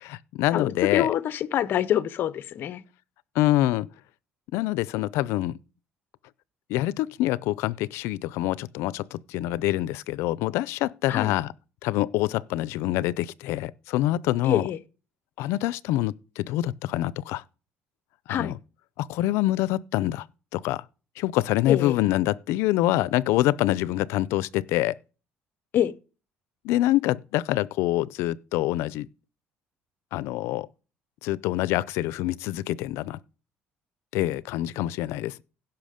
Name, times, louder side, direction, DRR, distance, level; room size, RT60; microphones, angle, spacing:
voice 1, 0.0-1.1 3.3-3.9 4.5-5.6 6.7-11.5 11.8-14.7 15.4-17.4 18.3-18.6 19.0-20.3 20.5-20.8 21.2-25.0 26.6-29.1 30.1-30.7 31.2-33.2 34.1-35.4, left 15 dB, 90° left, 0.5 m, -26 dB
voice 2, 0.5-2.8 11.1-11.3 14.4-14.8 18.3-18.5 21.7-22.0 25.7-25.9, left 10 dB, 50° left, 0.7 m, -25 dB
16.0 x 5.9 x 5.1 m
cardioid pair, 145°, 4 cm